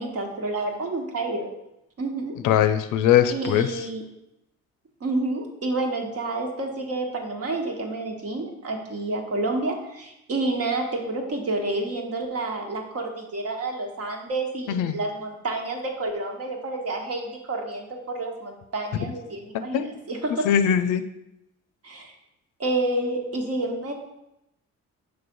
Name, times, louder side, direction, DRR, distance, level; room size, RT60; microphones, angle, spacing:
voice 1, 0.0-1.5 2.0-2.4 3.3-4.0 5.0-20.5 21.8-22.1 22.6-23.9, right 2 dB, 55° right, 2 dB, 1.3 m, -29 dB
voice 2, 2.4-3.7 14.7-15.0 19.7-20.0 20.4-21.0, left 9 dB, 85° left, 11 dB, 0.5 m, -21 dB
6.0 x 3.3 x 5.2 m, 0.87 s
cardioid pair, 90°, 30 cm